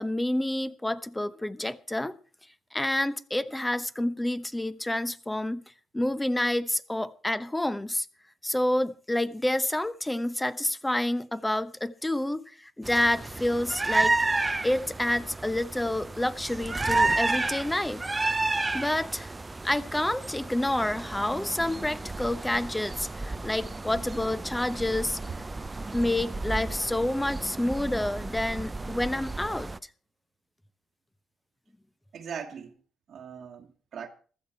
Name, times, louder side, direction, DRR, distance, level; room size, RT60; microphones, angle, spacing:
voice 1, 0.0-2.2 2.7-5.6 5.9-8.1 8.4-14.2 14.6-18.0 18.7-19.3 19.6-25.2 25.9-29.7, left 1 dB, 10° left, 0.9 m, -28 dB
sound 1, 12.8-29.8, right 2 dB, 20° right, 0.6 m, -31 dB
voice 2, 32.1-32.7 33.1-34.1, right 7 dB, 60° right, 1.5 m, -40 dB
15.5 x 13.5 x 4.4 m
cardioid pair, 90°, 0 cm